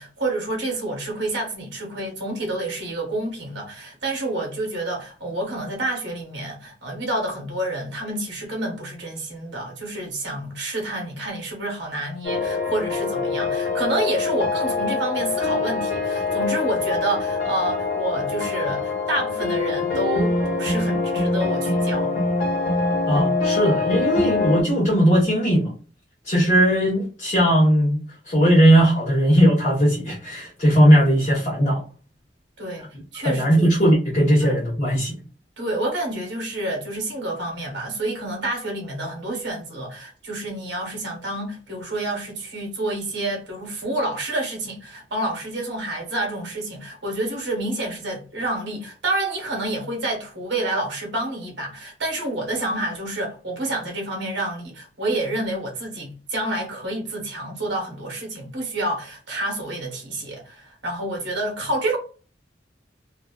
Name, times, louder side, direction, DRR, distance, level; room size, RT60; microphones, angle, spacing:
voice 1, 0.0-22.2 32.6-32.9 33.1-33.7 34.4-34.6 35.6-62.0, right 1 dB, 70° right, 1.0 m, -28 dB
sound 1, 12.2-24.6, left 3 dB, 55° left, 1.2 m, -24 dB
voice 2, 23.1-25.7 26.2-28.0 28.3-31.8 33.2-35.2, equal, 35° left, 0.8 m, -18 dB
2.5 x 2.3 x 2.2 m
head